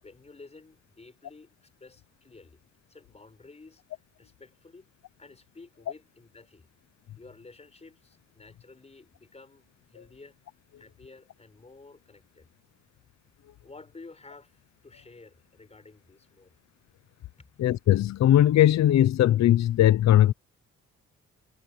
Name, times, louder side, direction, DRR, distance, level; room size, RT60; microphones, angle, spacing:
voice 1, 0.0-2.6 2.9-3.8 4.2-4.9 5.2-6.7 7.2-10.4 10.8-12.5 13.6-16.6 17.4-17.5, left 3 dB, 20° left, 5.9 m, -52 dB
voice 2, 17.6-20.3, left 12 dB, 65° left, 0.8 m, -19 dB
cardioid pair, 90°, 30 cm